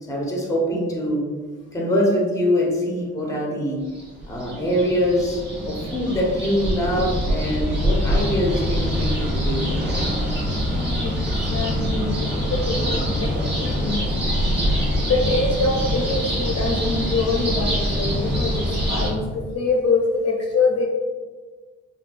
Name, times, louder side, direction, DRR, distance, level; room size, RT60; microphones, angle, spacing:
voice 1, 0.0-1.3 1.7-3.8 4.3-9.8, equal, 10° left, -2 dB, 0.7 m, -23 dB
sound 1, 4.0-19.1, equal, 35° right, 1.0 m, -24 dB
voice 2, 10.7-11.1 11.5-14.1 15.1-20.8, left 3 dB, 55° left, 0 dB, 0.6 m, -24 dB
3.2 x 2.5 x 2.5 m, 1.4 s
cardioid pair, 90°, 30 cm